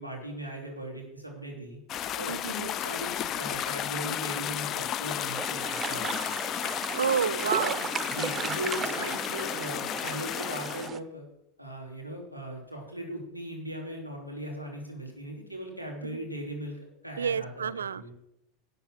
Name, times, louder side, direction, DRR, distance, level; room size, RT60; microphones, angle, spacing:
voice 1, 0.0-1.8 2.2-6.3 8.1-11.2 11.6-18.1, right 1 dB, 90° left, 0 dB, 3.2 m, -39 dB
sound 1, 1.9-10.9, left 11 dB, 35° left, 0.4 m, -33 dB
voice 2, 2.3-2.7 6.9-7.9 16.0-16.3 17.2-18.1, right 7 dB, 75° right, 19 dB, 0.4 m, -30 dB
sound 2, 5.4-11.0, right 6 dB, 20° right, 0.6 m, -36 dB
12.0 x 8.0 x 6.0 m, 0.87 s
figure-of-eight pair, 85°, 0 cm